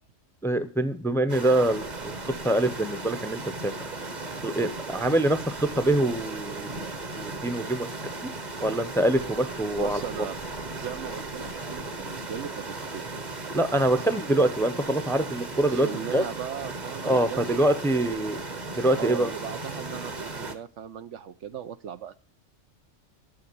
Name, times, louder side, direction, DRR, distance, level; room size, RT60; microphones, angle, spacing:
voice 1, 0.4-3.7 4.4-7.9 8.6-10.3 13.5-16.2 17.0-18.4 18.8-19.3, right 1 dB, ahead, 11 dB, 0.7 m, -25 dB
sound 1, 1.3-20.6, right 3 dB, 35° right, 1.3 m, -36 dB
voice 2, 9.7-10.4 10.7-13.1 15.7-18.2 19.0-22.1, right 8 dB, 70° right, 11 dB, 1.0 m, -38 dB
11.5 x 7.1 x 6.9 m, 0.38 s
omnidirectional pair, 1.3 m